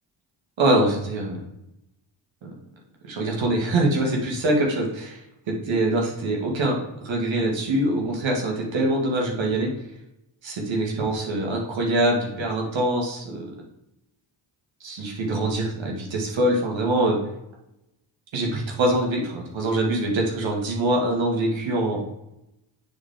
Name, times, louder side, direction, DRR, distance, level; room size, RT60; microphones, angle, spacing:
voice 1, 0.6-1.4 2.4-2.5 3.0-5.2 5.7-9.7 10.4-13.5 14.8-17.2 18.3-22.1, right 1 dB, 65° right, 0 dB, 2.2 m, -24 dB
9.4 x 4.3 x 3.8 m, 0.85 s
supercardioid pair, 60°, 49 cm